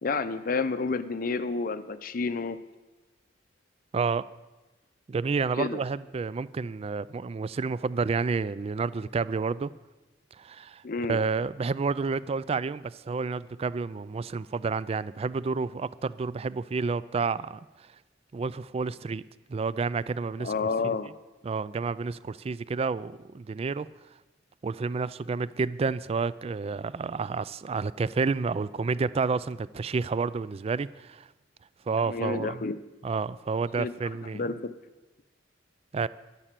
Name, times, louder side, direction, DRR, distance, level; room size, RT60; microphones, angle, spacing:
voice 1, 0.0-2.6 5.6-5.8 10.8-11.2 20.4-21.1 32.0-32.8 33.8-33.9 34.3-34.7, left 4 dB, 50° left, 12 dB, 0.6 m, -30 dB
voice 2, 3.9-4.2 5.1-9.7 10.4-10.8 11.1-17.9 18.3-19.2 19.5-20.5 20.8-21.0 21.4-23.9 24.6-31.3 31.9-32.6 33.0-34.4 35.9-36.1, right 4 dB, 35° right, 18 dB, 0.3 m, -30 dB
11.5 x 11.0 x 7.5 m, 1.1 s
head